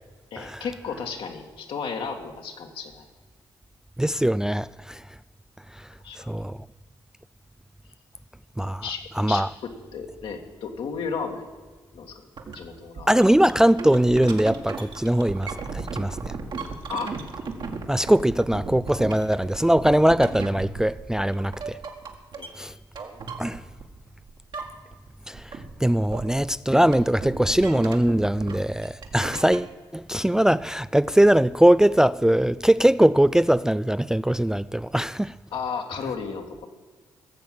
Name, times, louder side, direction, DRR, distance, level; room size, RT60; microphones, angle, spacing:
voice 1, 0.3-3.1 6.0-6.3 8.8-9.4 9.9-11.5 11.9-12.3 12.5-13.1 16.9-17.5 22.4-22.5 35.5-36.7, left 5 dB, 70° left, 1.9 m, -34 dB
voice 2, 4.0-5.0 6.2-6.6 8.6-8.8 9.2-9.5 13.1-16.3 17.9-21.8 22.6-22.7 23.4-23.6 25.3-25.5 25.8-35.3, right 1 dB, 5° right, 0.3 m, -21 dB
sound 1, 12.4-12.6 13.0-24.0 24.3-25.1 25.3-29.7, right 4 dB, 60° right, 1.9 m, -36 dB
17.0 x 7.2 x 7.7 m
supercardioid pair, 55°, 9 cm